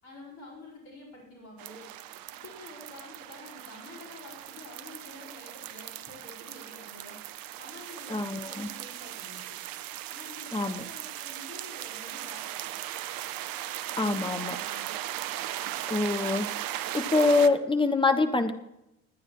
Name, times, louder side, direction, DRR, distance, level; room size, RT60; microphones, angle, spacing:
voice 1, 0.0-1.9 2.3-7.2 7.6-9.4 10.1-12.6 14.0-14.9, left 2 dB, 70° left, -4 dB, 4.8 m, -48 dB
sound 1, 1.6-17.5, right 13 dB, 50° right, 0.7 m, -38 dB
voice 2, 8.1-8.7 10.5-10.8 14.0-14.6 15.9-16.5 16.9-18.5, left 3 dB, 10° left, 7 dB, 1.2 m, -25 dB
21.0 x 9.7 x 3.1 m, 0.87 s
figure-of-eight pair, 50°, 43 cm